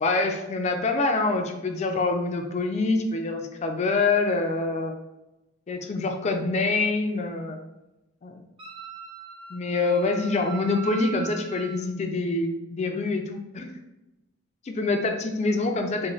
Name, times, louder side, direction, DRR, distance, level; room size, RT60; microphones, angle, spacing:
voice 1, 0.0-5.0 5.7-7.6 8.2-8.4 9.5-13.7 14.6-16.1, left 3 dB, 35° left, 4 dB, 0.4 m, -25 dB
Wind instrument woodwind instrument, 8.6-11.8, right 6 dB, 25° right, 0.6 m, -40 dB
3.0 x 2.0 x 3.9 m, 0.98 s
head